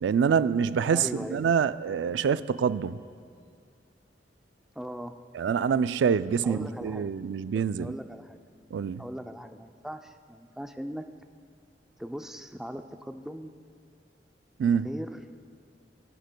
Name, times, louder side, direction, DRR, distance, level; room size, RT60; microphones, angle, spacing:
voice 1, 0.0-3.0 5.3-7.9 8.7-9.0 14.6-14.9, right 7 dB, 80° right, 15 dB, 0.3 m, -26 dB
voice 2, 0.9-1.6 4.8-5.1 6.4-7.1 7.5-8.4 9.0-11.0 12.0-13.5 14.6-15.3, equal, 5° right, 7 dB, 0.4 m, -39 dB
22.0 x 10.0 x 2.2 m, 2.2 s
head